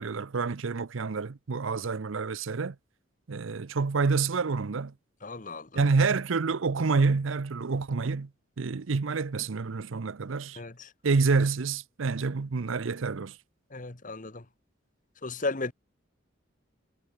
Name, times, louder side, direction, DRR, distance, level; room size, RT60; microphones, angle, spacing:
voice 1, 0.0-2.8 3.3-4.9 5.7-8.3 8.6-10.6 11.0-13.4, right 4 dB, 70° right, 0.6 m, -28 dB
voice 2, 5.2-5.8 10.6-10.9 13.7-14.4 15.2-15.7, left 3 dB, 40° left, 1.3 m, -35 dB
head